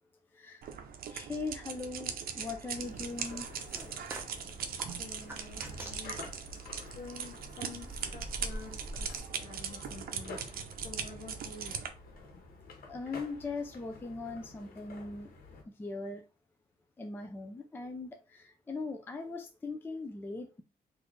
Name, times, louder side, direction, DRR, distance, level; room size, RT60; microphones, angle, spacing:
sound 1, 0.6-11.9, right 7 dB, 75° right, 0.6 m, -40 dB
voice 1, 1.1-3.5 12.9-15.3 15.7-16.2 17.0-20.6, left 3 dB, 15° left, 0.4 m, -40 dB
sound 2, 2.8-15.6, left 3 dB, 75° left, 1.2 m, -51 dB
sound 3, 2.8-9.2, right 1 dB, 15° right, 0.7 m, -46 dB
voice 2, 5.0-6.2 6.9-11.8, left 3 dB, 45° left, 0.8 m, -49 dB
4.0 x 2.6 x 3.1 m
wide cardioid pair, 155°, 15 cm